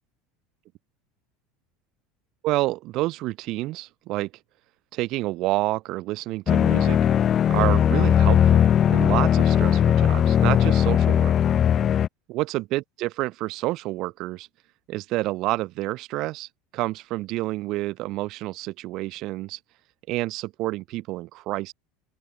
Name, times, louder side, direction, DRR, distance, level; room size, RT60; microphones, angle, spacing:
voice 1, 2.4-4.3 4.9-7.0 7.5-8.6 8.9-11.3 12.3-14.5 14.9-19.6 20.1-21.7, right 18 dB, 55° right, 6.2 m, -28 dB
sound 1, 6.5-12.1, left 9 dB, 35° left, 0.5 m, -19 dB
open air
supercardioid pair, 110°, 0 cm